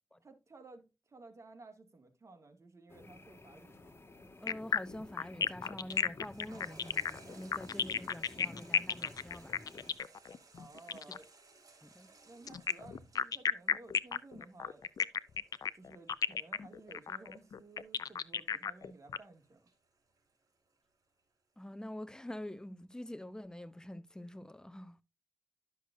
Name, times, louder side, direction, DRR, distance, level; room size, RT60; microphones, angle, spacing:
voice 1, 0.2-0.8 1.1-3.9 10.6-11.3 12.2-14.8 15.7-19.6, right 3 dB, 50° right, 2.3 m, -55 dB
sound 1, 2.9-9.9, left 2 dB, 40° left, 2.1 m, -53 dB
voice 2, 4.4-9.6 11.1-11.2 11.8-12.1 21.6-25.0, left 1 dB, 10° left, 0.8 m, -46 dB
sound 2, 4.5-11.2 12.5-19.2, left 7 dB, 75° left, 0.5 m, -34 dB
Toilet flush, 5.9-20.7 21.2-21.3, right 3 dB, 65° right, 4.6 m, -61 dB
12.0 x 6.5 x 2.7 m
cardioid pair, 55°, 6 cm